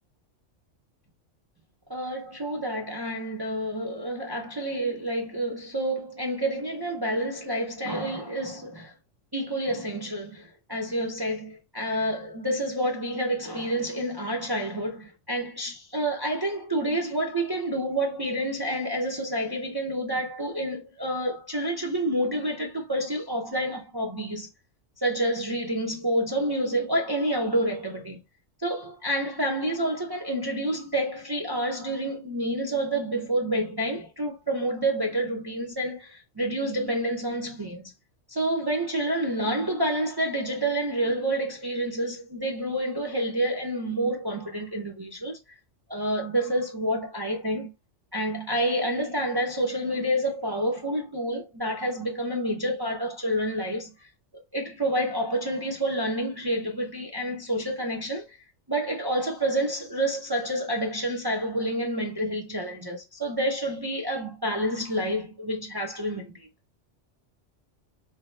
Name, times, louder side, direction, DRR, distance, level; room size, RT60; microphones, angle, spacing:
voice 1, 1.9-8.9 9.3-24.5 25.0-28.2 28.6-37.9 38.3-45.4 45.9-47.7 48.1-54.1 54.5-58.4 58.7-66.5, right 1 dB, 35° right, 0.4 m, -28 dB
3.9 x 2.1 x 3.1 m
omnidirectional pair, 1.3 m